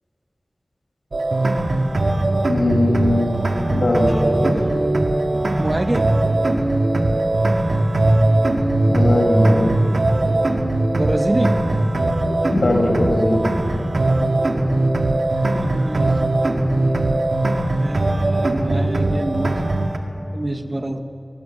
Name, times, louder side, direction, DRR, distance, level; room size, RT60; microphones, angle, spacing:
sound 1, 1.1-20.0, right 2 dB, 85° right, 2.1 m, -20 dB
voice 1, 2.5-3.3 3.7-4.6 8.9-9.8 12.5-13.5, left 1 dB, 80° left, 0 dB, 5.4 m, -19 dB
voice 2, 5.6-6.2 10.9-11.6 15.4-16.2 17.8-19.7 20.3-21.0, right 1 dB, 45° right, 7 dB, 1.7 m, -25 dB
26.0 x 19.0 x 7.9 m, 2.9 s
wide cardioid pair, 40°, 0 cm